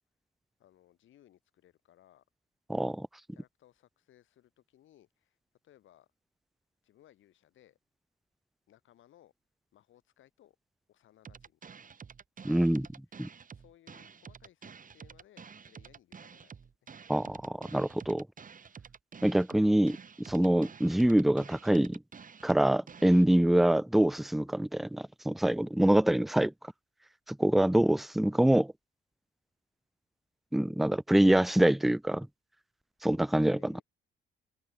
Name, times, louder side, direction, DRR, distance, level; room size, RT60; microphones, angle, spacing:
voice 1, 0.6-2.2 3.3-5.4 5.6-6.1 6.8-7.8 8.7-9.3 9.7-10.6 10.9-11.6 12.4-12.7 13.1-16.5 33.1-33.8, left 12 dB, 75° left, 6.4 m, -62 dB
voice 2, 2.7-3.1 12.4-12.9 13.2-13.3 17.1-18.3 19.2-22.0 22.4-26.5 27.3-28.7 30.5-32.3 33.0-33.7, right 1 dB, ahead, 0.4 m, -25 dB
sound 1, 11.2-23.2, right 6 dB, 40° right, 5.3 m, -50 dB
cardioid pair, 90°, 20 cm